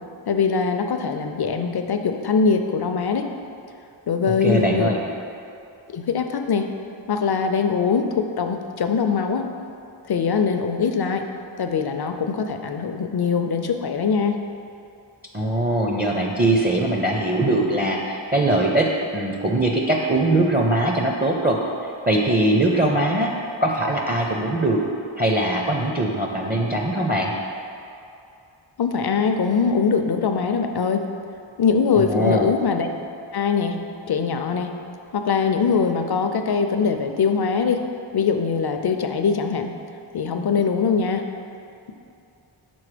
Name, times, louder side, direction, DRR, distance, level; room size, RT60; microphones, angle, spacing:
voice 1, 0.3-3.3 4.1-4.9 5.9-6.7 7.1-9.5 10.1-11.3 11.6-14.4 28.8-31.1 31.6-32.9 33.3-33.8 34.1-34.7 35.1-37.8 38.1-39.7 40.1-41.3, left 5 dB, 55° left, 6 dB, 0.5 m, -22 dB
voice 2, 4.4-5.0 15.3-21.6 22.1-23.3 23.6-24.8 25.2-27.3 32.0-32.5, right 1 dB, 20° right, -1 dB, 0.5 m, -21 dB
6.1 x 4.0 x 5.0 m, 2.6 s
wide cardioid pair, 60°, 48 cm